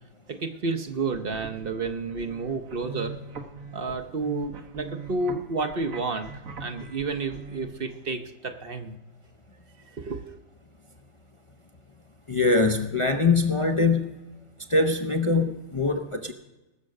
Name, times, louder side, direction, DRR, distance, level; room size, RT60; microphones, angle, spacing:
voice 1, 0.3-3.1 3.7-6.3 6.6-8.9 9.9-10.4, right 3 dB, 50° right, 0.9 m, -31 dB
sound 1, 1.0-7.7, right 4 dB, 90° right, 1.7 m, -41 dB
voice 2, 12.3-14.1 14.7-16.3, left 3 dB, 30° left, 0.6 m, -23 dB
19.0 x 7.5 x 6.5 m
omnidirectional pair, 1.4 m